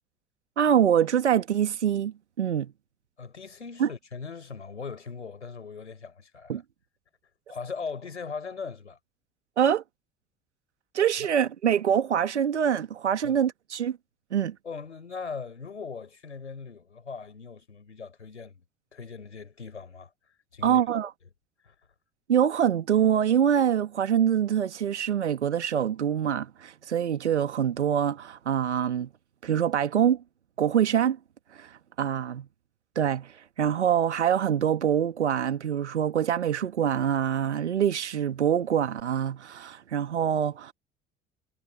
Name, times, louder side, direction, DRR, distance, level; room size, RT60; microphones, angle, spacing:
voice 1, 0.6-2.7 3.8-3.9 6.5-6.6 9.6-9.8 10.9-14.0 14.3-14.6 20.6-21.1 22.3-29.1 29.4-30.2 30.6-31.2 31.5-32.5 33.0-40.7, right 9 dB, 80° right, 1.7 m, -25 dB
voice 2, 3.2-6.6 7.5-9.0 13.2-13.4 14.6-18.6 18.9-20.1 20.5-20.8 21.6-21.7, left 5 dB, 85° left, 4.5 m, -39 dB
figure-of-eight pair, 55°, 34 cm